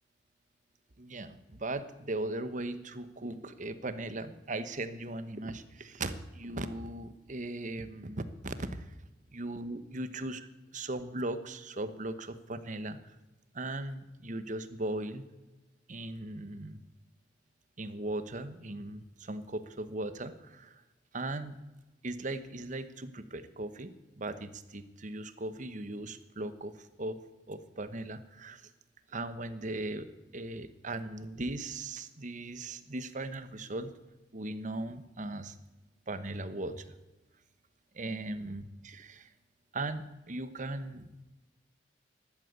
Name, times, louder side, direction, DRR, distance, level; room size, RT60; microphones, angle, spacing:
voice 1, 1.0-8.9 9.3-10.5 10.7-13.1 13.5-15.3 15.9-16.8 17.8-20.8 21.1-21.6 22.0-27.2 27.5-28.7 29.1-30.1 30.3-33.9 34.3-35.6 36.1-36.9 37.9-39.3 39.7-41.2, right 2 dB, 45° right, 12 dB, 1.2 m, -38 dB
14.0 x 12.0 x 8.2 m, 1.1 s
head